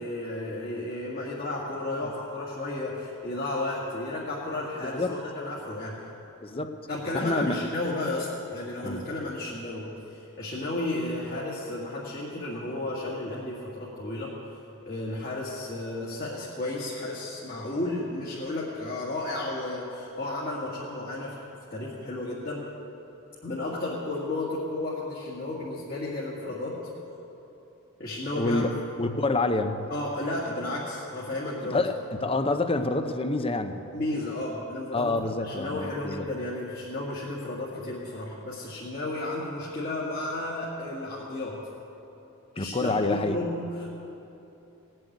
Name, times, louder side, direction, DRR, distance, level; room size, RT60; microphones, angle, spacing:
voice 1, 0.0-6.0 6.9-14.3 14.8-21.4 21.7-22.6 23.4-26.8 28.0-28.7 29.9-31.8 33.9-35.1 35.4-41.6 42.6-43.9, left 2 dB, 45° left, -6 dB, 2.1 m, -33 dB
voice 2, 4.8-5.2 6.4-6.7 7.1-7.6 8.8-9.0 28.3-28.7 29.0-29.8 31.7-32.0 32.2-33.8 34.9-36.2 42.6-43.4, left 2 dB, 25° left, 8 dB, 0.7 m, -27 dB
18.5 x 7.7 x 9.3 m, 3.0 s
head